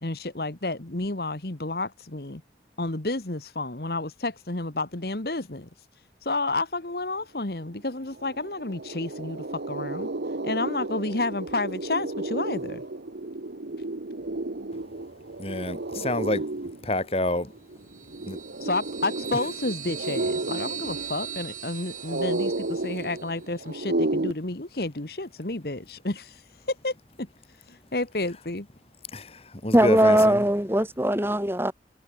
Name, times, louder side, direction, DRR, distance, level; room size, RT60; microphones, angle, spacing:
voice 1, 0.0-2.4 2.8-5.7 6.2-10.1 10.4-12.8 18.6-26.4 26.7-27.3 27.7-28.7, left 2 dB, 60° left, 1.6 m, -31 dB
sound 1, 7.7-7.8 8.1-24.3, right 2 dB, 75° right, 1.1 m, -32 dB
voice 2, 15.4-16.4 16.8-17.5 18.3-18.4 29.1-30.4, left 1 dB, 35° left, 2.8 m, -28 dB
sound 2, 17.9-23.4, right 9 dB, 45° right, 4.8 m, -39 dB
voice 3, 29.7-31.7, right 1 dB, 15° right, 3.0 m, -20 dB
head